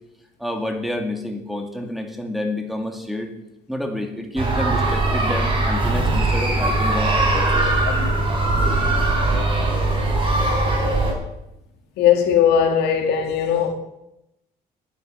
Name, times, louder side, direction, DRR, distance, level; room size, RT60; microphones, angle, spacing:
voice 1, 0.4-3.3 3.7-7.6, left 1 dB, ahead, 3 dB, 1.9 m, -28 dB
sound 1, 4.4-11.1, right 2 dB, 30° right, 3.9 m, -20 dB
voice 2, 12.0-13.7, left 8 dB, 85° left, 5 dB, 1.9 m, -18 dB
10.0 x 9.5 x 6.6 m, 0.87 s
cardioid pair, 110°, 17 cm